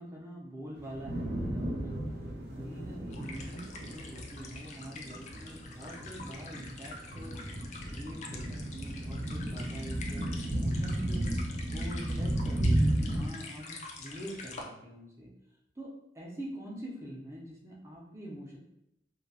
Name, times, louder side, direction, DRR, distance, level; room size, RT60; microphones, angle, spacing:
voice 1, 0.0-2.0 2.5-7.4 7.9-11.2 11.7-15.3 15.8-18.6, equal, 15° right, -3 dB, 0.5 m, -44 dB
sound 1, 0.8-13.2, right 1 dB, 65° right, 0.5 m, -34 dB
sound 2, 3.1-14.6, left 3 dB, 40° left, 0.3 m, -47 dB
2.2 x 2.0 x 2.7 m, 0.81 s
head